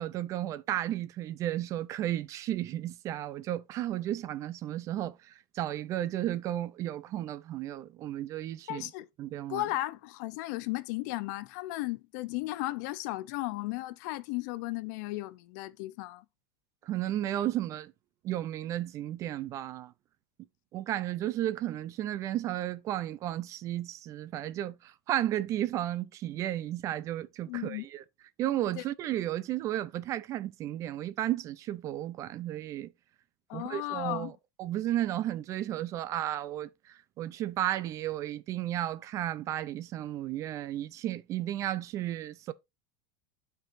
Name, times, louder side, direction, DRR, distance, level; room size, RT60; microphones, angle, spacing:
voice 1, 0.0-8.9 9.2-9.6 16.8-17.9 18.2-19.9 20.7-28.0 28.4-32.9 33.5-34.3 34.6-42.5, right 13 dB, 25° right, 0.3 m, -33 dB
voice 2, 8.7-9.1 9.5-16.2 27.5-27.9 28.7-28.8 33.5-34.3, left 18 dB, 55° left, 0.5 m, -35 dB
11.5 x 4.6 x 2.5 m
supercardioid pair, 165°, 12 cm